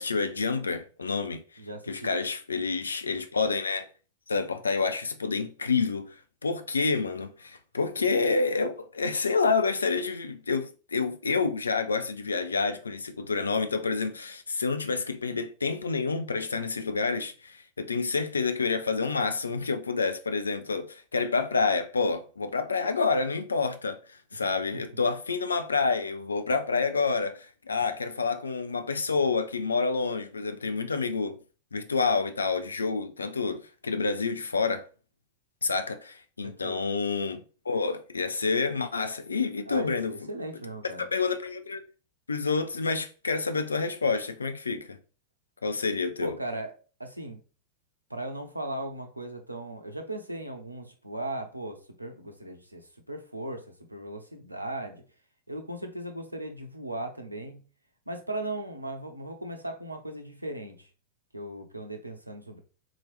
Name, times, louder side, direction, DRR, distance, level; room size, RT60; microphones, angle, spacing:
voice 1, 0.0-1.4 1.9-3.9 4.3-6.2 6.4-31.4 31.7-34.9 35.6-40.1 41.0-41.8 42.3-45.0 45.6-46.4, left 4 dB, 75° left, 0.4 m, -28 dB
voice 2, 1.6-2.1 24.3-24.5 24.9-25.0 36.4-36.8 39.7-41.1 46.2-46.7 47.0-47.4 48.1-55.0 55.5-57.6 58.1-60.9 61.3-62.6, right 1 dB, 85° right, 0.6 m, -37 dB
3.8 x 2.9 x 3.1 m
figure-of-eight pair, 90°, 0 cm